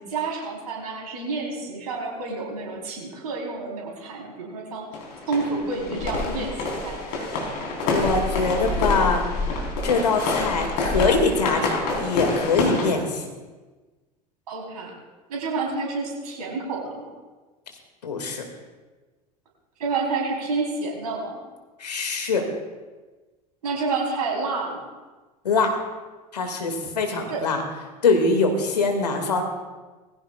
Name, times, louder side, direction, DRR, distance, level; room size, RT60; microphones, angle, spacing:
voice 1, 0.0-4.9 5.3-7.0 14.5-14.9 15.3-17.1 19.8-21.4 23.6-24.8 27.3-27.4, right 3 dB, 70° right, 0 dB, 4.1 m, -29 dB
sound 1, 4.9-12.9, left 2 dB, 55° left, 4.4 m, -27 dB
voice 2, 7.8-9.2 9.8-13.3 18.0-18.4 21.8-22.4 25.4-25.7 26.3-27.6 28.0-29.4, left 3 dB, 80° left, 4 dB, 2.3 m, -23 dB
20.5 x 15.5 x 2.5 m, 1.3 s
figure-of-eight pair, 75°, 21 cm